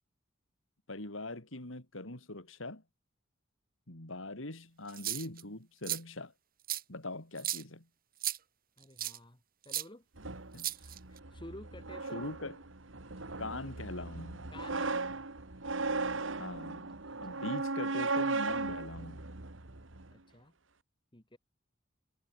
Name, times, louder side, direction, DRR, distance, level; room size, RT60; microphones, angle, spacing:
voice 1, 0.9-2.8 3.9-6.3 6.9-7.9 10.5-10.7 12.1-12.6 13.4-14.5 16.4-19.3, left 2 dB, 90° left, 4.0 m, -42 dB
sound 1, 4.9-5.4 5.8-6.0 6.7-6.8 7.4-7.6 8.2-8.4 9.0-9.2 9.7-9.8 10.6-11.2, right 13 dB, 50° right, 2.4 m, -35 dB
voice 2, 8.8-10.0 10.6-12.3 14.5-14.9 17.1-17.4 20.1-20.5 21.1-21.4, left 1 dB, 25° left, 2.8 m, -52 dB
sound 2, 10.2-20.1, right 3 dB, 75° right, 2.1 m, -37 dB
head